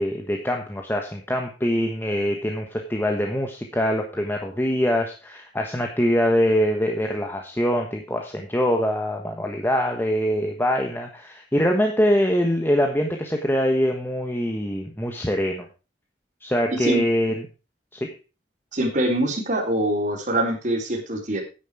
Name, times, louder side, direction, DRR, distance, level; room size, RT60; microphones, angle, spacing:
voice 1, 0.0-15.7 16.4-17.4 17.9-18.1, equal, 10° left, 2 dB, 1.3 m, -23 dB
voice 2, 16.7-17.0 18.7-21.4, right 1 dB, 45° right, 0 dB, 3.5 m, -24 dB
10.0 x 9.4 x 4.9 m, 0.32 s
head